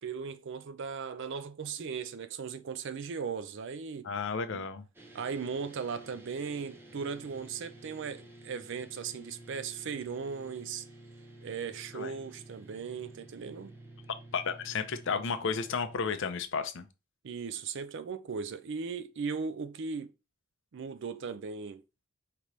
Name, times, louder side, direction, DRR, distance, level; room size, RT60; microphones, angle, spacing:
voice 1, 0.0-4.1 4.5-4.7 5.1-10.9 11.4-13.7 17.2-20.1 20.7-21.8, right 5 dB, 55° right, 0.4 m, -37 dB
voice 2, 4.0-4.8 11.9-12.1 14.3-16.9, left 5 dB, 60° left, 0.5 m, -32 dB
sound 1, 4.9-16.0, right 1 dB, 10° right, 0.6 m, -51 dB
5.1 x 2.9 x 3.1 m
head